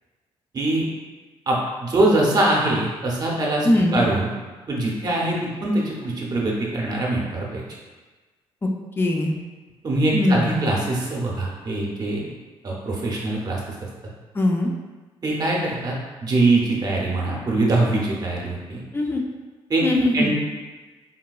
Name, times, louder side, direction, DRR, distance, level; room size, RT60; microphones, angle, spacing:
voice 1, 1.5-4.3 4.7-7.6 9.8-12.3 12.6-13.6 15.2-15.9 16.2-18.8 19.7-19.8 20.1-20.3, right 2 dB, 40° right, -3 dB, 0.7 m, -23 dB
voice 2, 3.6-4.0 8.6-8.7 9.0-9.3 10.1-10.6 14.3-14.7 18.9-19.2 19.8-20.3, left 1 dB, 20° left, 1 dB, 0.4 m, -20 dB
3.8 x 2.2 x 2.3 m, 1.3 s
cardioid pair, 100°, 10 cm